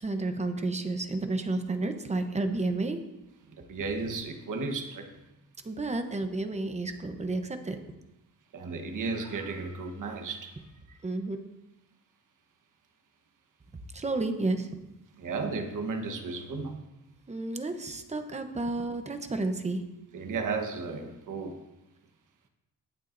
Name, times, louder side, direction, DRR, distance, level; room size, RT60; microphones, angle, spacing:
voice 1, 0.0-3.0 5.6-7.8 11.0-11.4 13.9-14.7 17.3-19.8, right 2 dB, 20° right, 7 dB, 0.9 m, -31 dB
voice 2, 3.5-5.1 8.5-11.0 15.2-16.8 20.1-21.6, right 4 dB, 65° right, 4 dB, 1.3 m, -34 dB
20.5 x 7.2 x 2.6 m, 0.96 s
wide cardioid pair, 145°, 33 cm